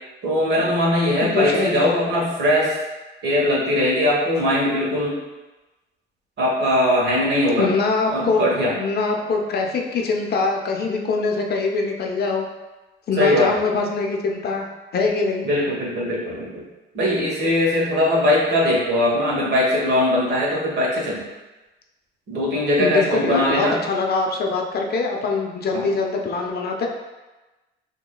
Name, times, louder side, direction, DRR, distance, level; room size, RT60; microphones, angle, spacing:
voice 1, 0.2-2.8 3.2-5.2 6.4-7.7 8.1-8.7 13.2-13.5 15.4-16.6 16.9-21.2 22.3-23.7 25.7-25.8, left 1 dB, 60° right, -4 dB, 1.3 m, -20 dB
voice 2, 1.2-1.9 7.6-8.4 8.7-12.5 13.1-14.6 14.9-15.5 22.8-26.9, left 4 dB, 55° left, 1 dB, 0.6 m, -23 dB
6.0 x 2.2 x 2.3 m, 1.1 s
cardioid pair, 90°, 20 cm